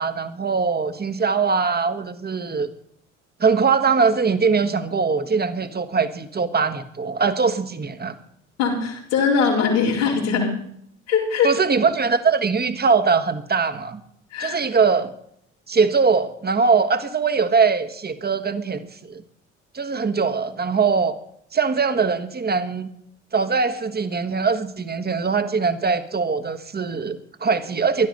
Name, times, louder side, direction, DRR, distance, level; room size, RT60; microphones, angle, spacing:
voice 1, 0.0-2.7 3.4-8.2 11.4-14.0 14.4-15.1 15.7-19.2 19.7-21.2 21.5-22.9 23.3-28.1, right 5 dB, 25° right, 9 dB, 1.5 m, -21 dB
voice 2, 8.6-10.6 11.1-11.5 14.3-14.6, left 6 dB, 80° left, -4 dB, 4.1 m, -21 dB
16.5 x 12.0 x 5.3 m, 0.68 s
figure-of-eight pair, 50°, 36 cm